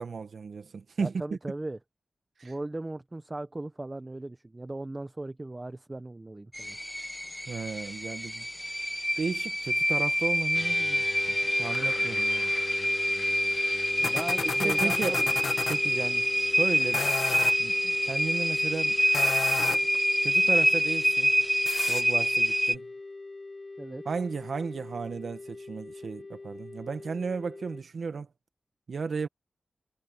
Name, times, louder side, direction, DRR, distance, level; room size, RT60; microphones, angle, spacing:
voice 1, 0.0-1.1 2.4-2.5 7.5-8.5 9.2-12.5 14.0-14.1 14.4-17.1 17.6-19.0 20.2-21.3 21.7-22.9 24.0-28.3 28.9-29.3, right 5 dB, 70° right, 1.3 m, -34 dB
voice 2, 1.0-1.8 2.4-6.8 14.0-15.3 23.8-24.0, right 2 dB, 25° right, 0.9 m, -37 dB
sound 1, 6.5-22.7, equal, 5° left, 0.6 m, -27 dB
sound 2, 10.5-27.8, left 3 dB, 40° left, 1.4 m, -41 dB
sound 3, 11.7-15.8 16.8-17.6 19.0-20.0 21.7-22.0, left 5 dB, 75° left, 1.3 m, -35 dB
wide cardioid pair, 90°, 0 cm